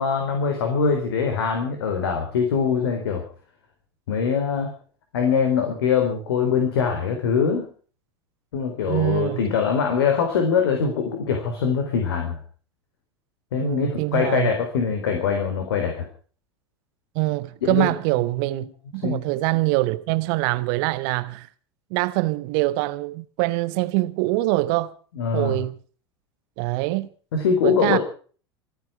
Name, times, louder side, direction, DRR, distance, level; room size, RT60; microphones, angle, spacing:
voice 1, 0.0-3.2 4.1-4.7 5.1-7.7 8.5-12.4 13.5-16.0 17.6-17.9 19.0-19.2 25.2-25.6 27.3-28.0, left 6 dB, 65° left, 4.0 m, -23 dB
voice 2, 8.9-9.4 13.6-14.5 17.1-18.7 18.9-21.5 21.9-24.9 25.3-25.7 26.6-27.1 27.6-28.0, right 20 dB, 50° right, 1.1 m, -24 dB
27.0 x 9.5 x 4.9 m
figure-of-eight pair, 80°, 14 cm